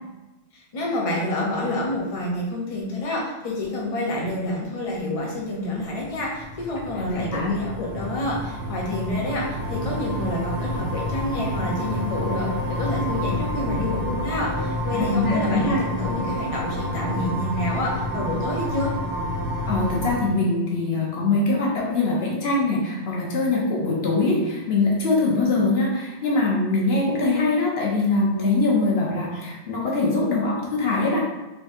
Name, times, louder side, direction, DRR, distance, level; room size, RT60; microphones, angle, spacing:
voice 1, 0.5-18.9, left 1 dB, 35° left, -3 dB, 0.8 m, -28 dB
sound 1, 5.7-20.1, left 1 dB, 75° right, 1.6 m, -29 dB
voice 2, 6.9-7.5 14.9-15.8 19.7-31.2, left 3 dB, 65° left, -3 dB, 0.9 m, -23 dB
3.5 x 3.5 x 2.6 m, 1.1 s
omnidirectional pair, 1.1 m